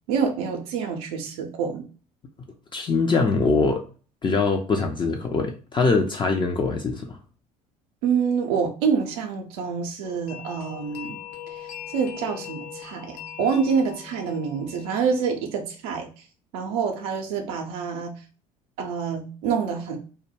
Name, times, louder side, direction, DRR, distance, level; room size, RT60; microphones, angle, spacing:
voice 1, 0.1-1.8 8.0-11.2 11.5-16.1 16.5-18.2 18.8-20.0, right 6 dB, 70° right, 2 dB, 0.5 m, -26 dB
voice 2, 2.7-3.8 4.2-7.2, left 4 dB, 25° left, 2 dB, 0.4 m, -23 dB
sound 1, 10.0-15.7, left 9 dB, 75° left, 0.6 m, -41 dB
2.1 x 2.1 x 3.1 m, 0.38 s
hypercardioid pair, 60°, 19 cm